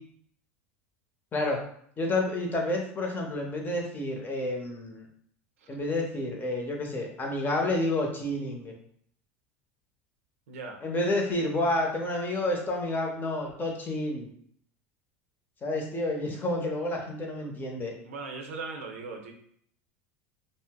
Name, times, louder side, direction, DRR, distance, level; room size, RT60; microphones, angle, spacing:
voice 1, 1.3-1.6 2.0-5.1 5.7-8.7 10.8-14.3 15.6-17.9, left 1 dB, 25° left, 1 dB, 0.8 m, -29 dB
voice 2, 10.5-10.8 18.0-19.3, right 4 dB, 85° right, 3 dB, 0.5 m, -38 dB
2.5 x 2.0 x 3.5 m, 0.63 s
hypercardioid pair, 95°, 7 cm